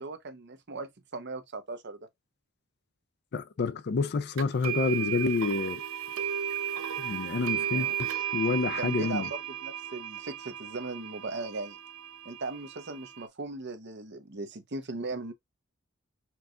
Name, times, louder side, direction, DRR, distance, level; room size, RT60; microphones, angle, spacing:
voice 1, 0.0-2.1 7.7-7.9 8.8-11.8 12.2-15.3, right 3 dB, 55° right, 0.8 m, -38 dB
voice 2, 3.3-5.8 7.0-9.3, left 4 dB, 50° left, 0.5 m, -29 dB
sound 1, 4.4-13.2, right 9 dB, 85° right, 0.6 m, -34 dB
4.6 x 2.4 x 3.7 m
head